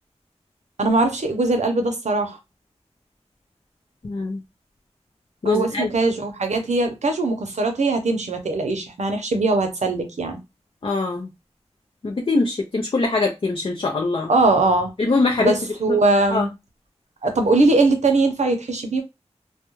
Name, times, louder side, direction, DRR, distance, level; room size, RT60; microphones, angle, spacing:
voice 1, 0.8-2.4 5.4-10.4 14.3-14.9 15.4-16.5 17.2-19.0, right 2 dB, 85° right, 0.6 m, -21 dB
voice 2, 4.0-4.4 5.4-5.9 10.8-11.3 12.0-14.3 15.0-15.5 16.3-16.5, left 3 dB, 50° left, 0.4 m, -22 dB
2.3 x 2.1 x 3.0 m
wide cardioid pair, 60°, 12 cm